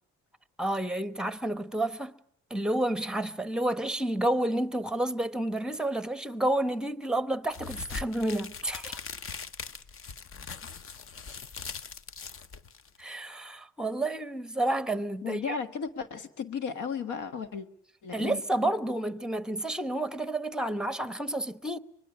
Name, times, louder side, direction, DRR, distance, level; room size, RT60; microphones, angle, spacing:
voice 1, 0.6-2.2 2.5-9.0 13.0-15.6 18.1-21.8, right 1 dB, ahead, 0.9 m, -30 dB
sound 1, 7.5-13.0, left 5 dB, 45° left, 0.9 m, -41 dB
voice 2, 15.2-17.7 18.0-18.4, left 6 dB, 80° left, 1.6 m, -34 dB
24.5 x 20.5 x 8.4 m
cardioid pair, 90°, 30 cm